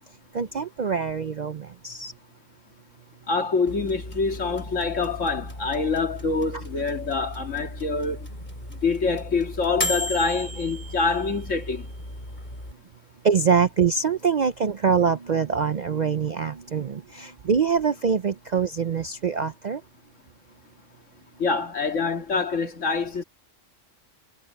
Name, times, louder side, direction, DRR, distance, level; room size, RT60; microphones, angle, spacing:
voice 1, 0.3-2.1 13.2-19.8, right 6 dB, 50° right, 0.5 m, -24 dB
voice 2, 3.3-8.3 8.8-11.9 21.4-23.2, left 4 dB, 70° left, 2.3 m, -26 dB
sound 1, 3.7-12.7, left 1 dB, 35° left, 7.9 m, -35 dB
omnidirectional pair, 1.3 m